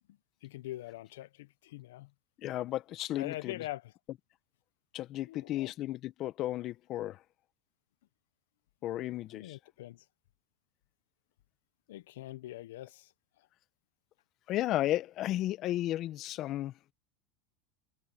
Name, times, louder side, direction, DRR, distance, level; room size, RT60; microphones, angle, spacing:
voice 1, 0.1-2.1 3.2-3.9 5.3-5.7 9.3-10.1 11.9-13.1 13.4-13.5, left 16 dB, 80° left, 1.1 m, -43 dB
voice 2, 2.4-3.6 4.9-7.2 8.8-9.6 14.5-16.9, left 14 dB, 50° left, 1.5 m, -34 dB
hypercardioid pair, 95°, 0 cm